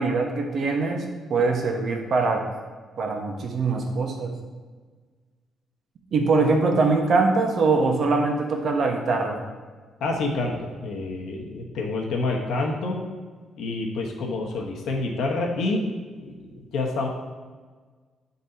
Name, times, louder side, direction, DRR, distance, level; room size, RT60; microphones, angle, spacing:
voice 1, 0.0-2.4 3.0-4.3 6.1-9.4, right 3 dB, 55° right, 2 dB, 1.1 m, -23 dB
voice 2, 10.0-13.0 13.6-15.8 16.2-17.1, left 3 dB, 75° left, 0 dB, 1.1 m, -28 dB
8.3 x 4.1 x 4.0 m, 1.5 s
cardioid pair, 120°, 0 cm